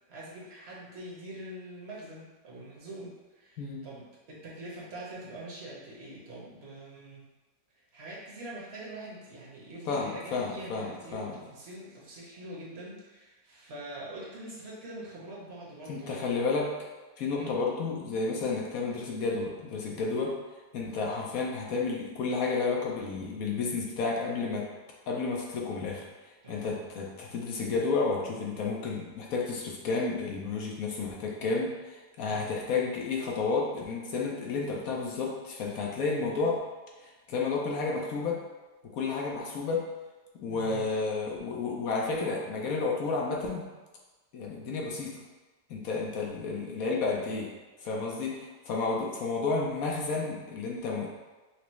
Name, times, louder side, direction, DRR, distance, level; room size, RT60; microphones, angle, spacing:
voice 1, 0.1-7.3 7.9-16.2 17.4-17.6 26.4-26.8 32.2-32.5 40.5-40.8, right 1 dB, 45° right, -6 dB, 1.0 m, -44 dB
voice 2, 9.9-11.4 15.9-16.7 17.2-20.3 20.7-24.7 25.1-26.0 26.5-36.6 37.0-38.4 38.9-39.8 40.4-43.7 44.3-45.2 45.7-47.5 47.8-51.1, left 4 dB, 65° left, -2 dB, 1.0 m, -31 dB
5.9 x 2.0 x 3.1 m, 1.2 s
omnidirectional pair, 1.9 m